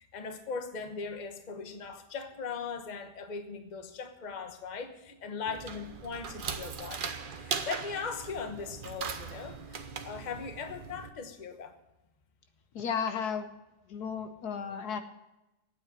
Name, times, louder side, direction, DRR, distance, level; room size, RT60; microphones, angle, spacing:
voice 1, 0.1-7.0 7.3-11.7, left 5 dB, 30° left, 7 dB, 1.1 m, -39 dB
sound 1, 5.5-11.1, right 6 dB, 45° right, 0.7 m, -39 dB
voice 2, 12.7-13.5 13.9-15.0, left 6 dB, 70° left, 8 dB, 1.3 m, -33 dB
9.4 x 9.2 x 8.9 m, 0.97 s
omnidirectional pair, 1.8 m